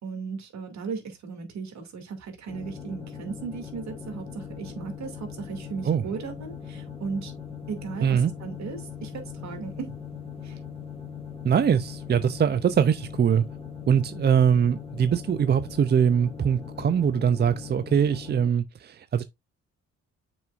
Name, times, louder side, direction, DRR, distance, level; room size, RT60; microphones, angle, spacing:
voice 1, 0.0-7.3 7.7-9.9 10.4-10.6, right 5 dB, 65° right, 2.6 m, -36 dB
sound 1, 2.5-18.5, left 7 dB, 20° left, 2.1 m, -40 dB
voice 2, 8.0-8.3 11.4-13.4 13.9-19.2, right 7 dB, 35° right, 0.5 m, -22 dB
7.2 x 6.1 x 2.5 m
cardioid pair, 90°, 30 cm